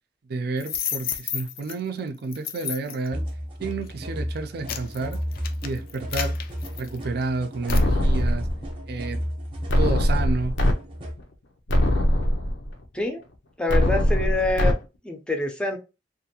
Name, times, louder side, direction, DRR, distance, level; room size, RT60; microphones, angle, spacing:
voice 1, 0.3-3.2 3.6-5.2 5.6-6.4 6.8-8.5 8.9-9.2 9.8-10.6, right 3 dB, 60° right, 0.5 m, -30 dB
sound 1, 0.6-1.7 2.3-3.1 3.7-3.9 4.4-7.2 7.7-7.9, left 9 dB, 55° left, 0.4 m, -32 dB
sound 2, 3.1-11.2, equal, 30° right, 0.7 m, -33 dB
sound 3, 7.7-8.7 9.7-10.7 11.2-11.3 11.7-12.7 13.7-14.7, equal, 85° left, 0.7 m, -21 dB
voice 2, 13.6-14.7 15.0-15.8, left 2 dB, 5° left, 0.5 m, -26 dB
2.6 x 2.4 x 2.7 m
head